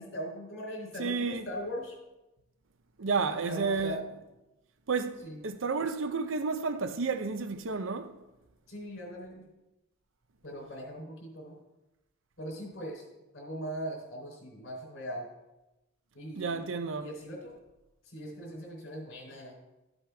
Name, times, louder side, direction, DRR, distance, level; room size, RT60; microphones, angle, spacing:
voice 1, 0.0-2.0 3.2-4.1 5.2-5.4 8.7-9.4 10.4-11.6 12.4-13.1 13.3-15.3 16.1-16.6 17.0-17.5 18.0-19.5, equal, 65° left, 3.6 m, -40 dB
voice 2, 1.0-1.5 3.0-4.0 4.9-8.1 16.4-17.1, right 4 dB, 70° right, 0.7 m, -31 dB
13.0 x 8.0 x 3.4 m
head